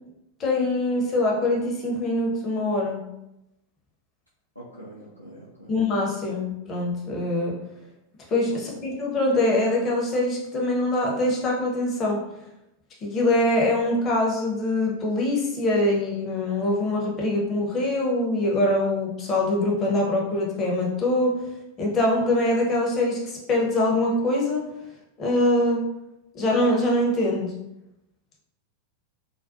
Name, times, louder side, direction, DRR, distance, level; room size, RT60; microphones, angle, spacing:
voice 1, 0.4-3.0 5.7-7.6 8.3-12.2 13.0-21.3 21.8-24.6 25.2-25.8 26.3-27.5, left 1 dB, 30° left, -1 dB, 0.7 m, -23 dB
voice 2, 4.6-5.7, right 1 dB, 90° left, -7 dB, 0.4 m, -44 dB
2.3 x 2.2 x 2.6 m, 0.87 s
figure-of-eight pair, 90°, 0 cm